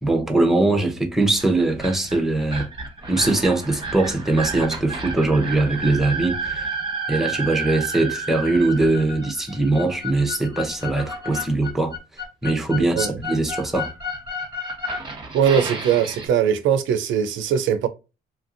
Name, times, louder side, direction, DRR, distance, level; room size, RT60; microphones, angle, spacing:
voice 1, 0.0-2.7 3.1-6.7 7.1-11.9 12.4-13.9, right 2 dB, ahead, 0.7 m, -21 dB
sound 1, 1.2-16.3, right 1 dB, 25° right, 1.0 m, -31 dB
voice 2, 12.8-13.2 15.3-17.9, right 8 dB, 75° right, 0.4 m, -21 dB
2.9 x 2.6 x 2.5 m
cardioid pair, 90°, 20 cm